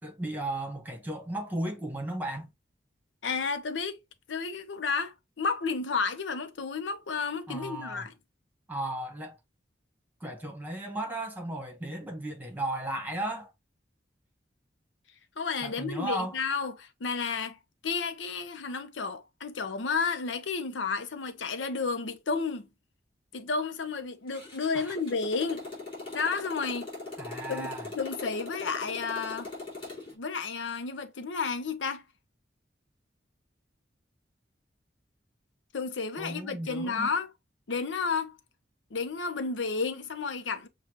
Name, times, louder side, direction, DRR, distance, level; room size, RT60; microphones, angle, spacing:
voice 1, 0.0-2.5 7.5-8.1 8.7-9.4 10.2-13.5 15.6-16.4 24.7-25.0 27.2-27.9 36.2-37.1, right 1 dB, 10° right, 1.1 m, -35 dB
voice 2, 3.2-4.0 4.3-8.1 15.4-22.7 23.3-25.7 26.1-26.9 27.5-27.7 27.9-29.5 30.2-32.0 35.7-37.3 37.7-38.4 38.9-40.7, left 4 dB, 90° left, 0.6 m, -32 dB
Motorcycle, 24.3-30.1, left 3 dB, 30° left, 2.6 m, -40 dB
6.6 x 2.3 x 2.9 m
head